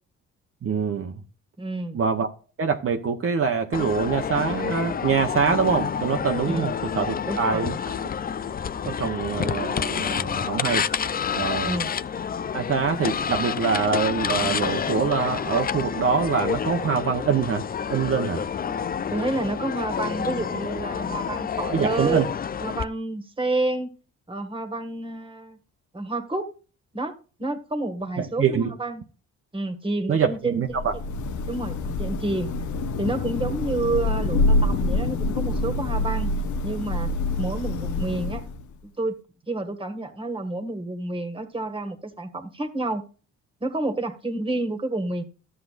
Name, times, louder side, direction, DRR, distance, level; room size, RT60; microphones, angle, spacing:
voice 1, 0.6-1.1 1.9-2.3 2.6-7.8 8.8-10.9 11.3-11.8 12.5-17.6 17.9-18.4 21.7-22.3 28.2-28.7 30.1-30.9, right 6 dB, 50° right, 1.0 m, -24 dB
voice 2, 1.6-2.0 6.5-6.7 7.2-7.7 11.6-11.9 18.6-18.7 19.1-22.3 22.6-23.9 24.3-25.6 25.9-26.5 26.9-27.1 27.4-29.0 29.5-31.0 31.5-32.5 33.0-36.3 36.6-37.1 37.4-38.4 39.0-39.2 39.5-43.0 43.6-45.2, right 2 dB, 15° right, 1.8 m, -29 dB
sound 1, 3.7-22.8, left 7 dB, 30° left, 0.5 m, -28 dB
Thunder / Rain, 30.7-38.7, left 2 dB, 75° left, 1.0 m, -26 dB
13.5 x 7.7 x 2.5 m
cardioid pair, 90°, 30 cm